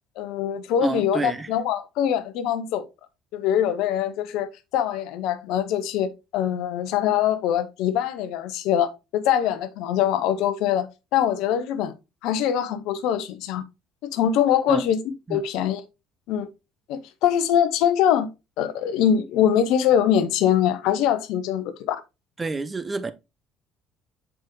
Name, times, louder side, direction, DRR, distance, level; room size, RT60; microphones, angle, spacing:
voice 1, 0.2-2.9 3.3-4.5 4.7-11.9 12.2-13.6 14.0-15.8 16.3-16.5 16.9-18.3 18.6-22.0, left 9 dB, 65° left, 0.8 m, -23 dB
voice 2, 0.8-1.5 14.7-14.8 15.3-15.4 22.4-23.1, right 3 dB, 25° right, 0.8 m, -29 dB
7.4 x 4.9 x 3.1 m
hypercardioid pair, 55°, 0 cm